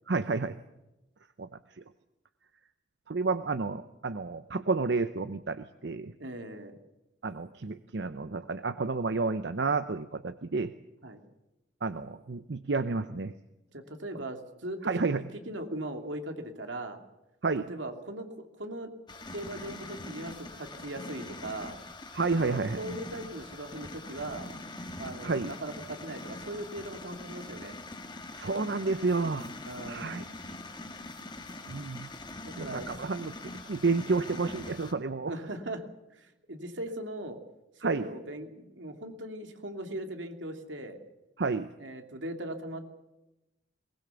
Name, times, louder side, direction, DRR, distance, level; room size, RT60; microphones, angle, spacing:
voice 1, 0.1-0.6 1.4-1.5 3.1-6.1 7.2-10.7 11.8-13.3 14.8-15.2 17.4-17.7 22.1-22.8 25.2-25.5 28.3-29.5 29.9-30.3 31.7-32.1 32.6-35.4 37.8-38.1 41.4-41.7, right 4 dB, 65° right, 11 dB, 0.7 m, -30 dB
voice 2, 6.2-6.8 11.0-11.2 13.7-17.0 17.7-18.9 19.3-21.8 22.3-24.5 25.0-27.8 29.6-30.2 32.5-32.9 35.2-35.9 36.1-37.4 37.8-41.0 41.8-42.9, right 1 dB, 90° right, 5 dB, 2.6 m, -39 dB
sound 1, 19.1-34.9, left 2 dB, 25° left, 1.7 m, -43 dB
21.5 x 20.0 x 7.0 m, 0.99 s
head